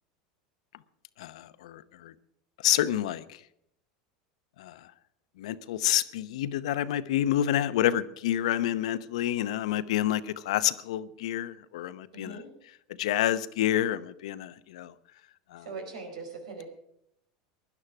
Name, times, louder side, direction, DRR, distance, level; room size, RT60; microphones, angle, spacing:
voice 1, 1.2-2.1 2.6-3.2 4.6-4.8 5.4-12.4 13.0-14.9 15.5-15.6, left 12 dB, 80° left, 14 dB, 0.8 m, -28 dB
voice 2, 12.1-12.5 15.6-16.6, right 4 dB, 90° right, 3 dB, 4.8 m, -40 dB
16.5 x 11.0 x 6.0 m, 0.75 s
supercardioid pair, 110°, 3 cm